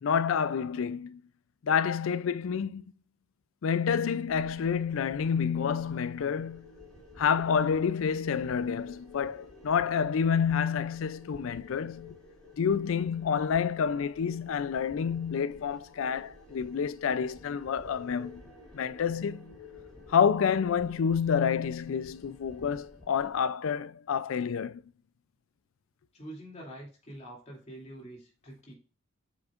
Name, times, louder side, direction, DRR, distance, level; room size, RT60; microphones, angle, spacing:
voice 1, 0.0-1.2 1.6-2.8 3.6-6.6 7.2-12.1 12.6-18.4 18.7-19.5 20.1-24.8, left 7 dB, 70° left, 0.4 m, -28 dB
sound 1, 4.3-23.4, left 2 dB, 5° left, 3.1 m, -52 dB
voice 2, 26.1-28.8, right 1 dB, 35° left, 2.6 m, -46 dB
8.5 x 6.2 x 2.5 m
head